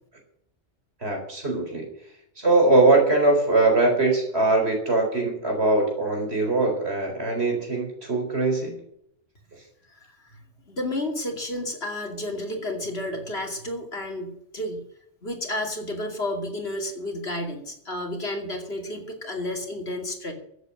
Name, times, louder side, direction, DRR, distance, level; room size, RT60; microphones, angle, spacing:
voice 1, 1.0-1.9 2.4-8.8, right 2 dB, 60° right, 2 dB, 4.5 m, -21 dB
voice 2, 9.9-14.8 15.2-20.3, left 1 dB, 60° left, 2 dB, 3.0 m, -31 dB
14.5 x 8.1 x 7.7 m, 0.72 s
omnidirectional pair, 1.2 m